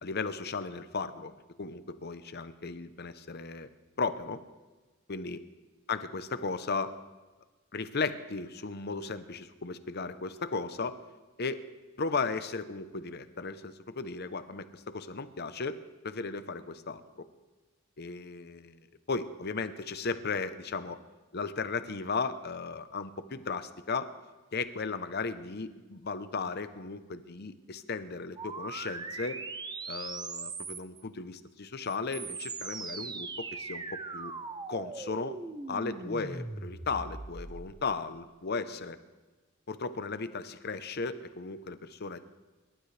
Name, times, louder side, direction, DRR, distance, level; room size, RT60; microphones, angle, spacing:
voice 1, 0.0-1.3 1.6-3.7 4.0-4.4 5.1-5.4 5.9-6.9 7.7-11.0 11.4-11.7 12.0-17.2 18.0-18.8 19.1-21.0 21.3-24.1 24.5-29.4 29.9-34.3 34.7-35.4 35.7-39.0 39.7-42.3, left 4 dB, 55° left, 11 dB, 0.8 m, -35 dB
sound 1, 28.4-31.0 31.9-37.8, right 3 dB, 20° right, 0.7 m, -40 dB
27.0 x 12.5 x 3.4 m, 1.3 s
head